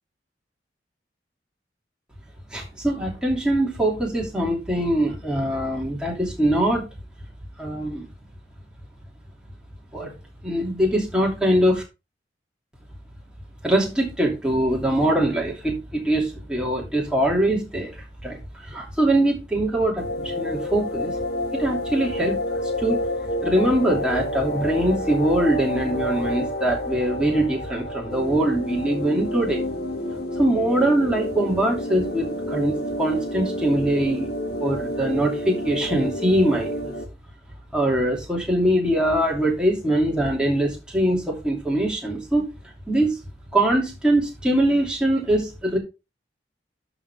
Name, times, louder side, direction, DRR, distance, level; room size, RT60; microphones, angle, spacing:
voice 1, 2.5-6.8 7.6-8.1 9.9-10.1 10.4-11.8 13.6-17.9 18.2-21.1 21.5-23.0 23.4-29.7 30.4-34.3 34.6-36.9 37.7-42.5 42.9-43.1 43.5-45.8, right 1 dB, 5° right, -2 dB, 2.8 m, -22 dB
sound 1, 20.0-37.0, left 1 dB, 60° left, 1.4 m, -29 dB
12.0 x 5.1 x 3.5 m, 0.28 s
head